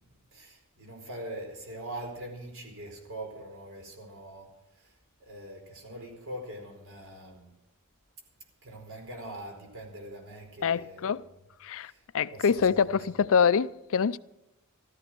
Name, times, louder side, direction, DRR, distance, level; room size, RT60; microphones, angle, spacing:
voice 1, 0.3-4.5 4.8-4.9 5.2-7.5 8.6-11.2 11.8-12.0 12.3-13.1, right 1 dB, 65° right, 4.5 m, -43 dB
voice 2, 10.6-11.3 11.6-14.2, left 6 dB, 65° left, 0.5 m, -25 dB
14.5 x 13.5 x 6.1 m
head